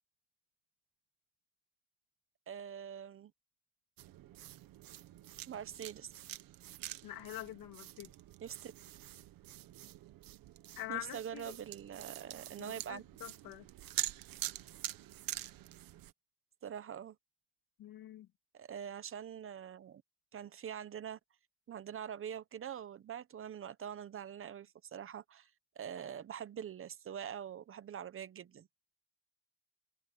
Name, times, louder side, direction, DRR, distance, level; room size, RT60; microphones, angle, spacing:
voice 1, 2.5-3.3 5.5-6.1 8.4-8.7 9.8-9.9 10.9-13.0 16.6-17.2 18.5-20.0 20.3-21.2 21.7-25.5 25.8-28.7, right 9 dB, 40° right, 0.8 m, -44 dB
sound 1, 4.0-16.1, right 14 dB, 80° right, 1.2 m, -45 dB
voice 2, 7.0-8.1 10.8-11.6 12.6-13.7 17.8-18.3, left 15 dB, 80° left, 2.9 m, -45 dB
cardioid pair, 155°, 34 cm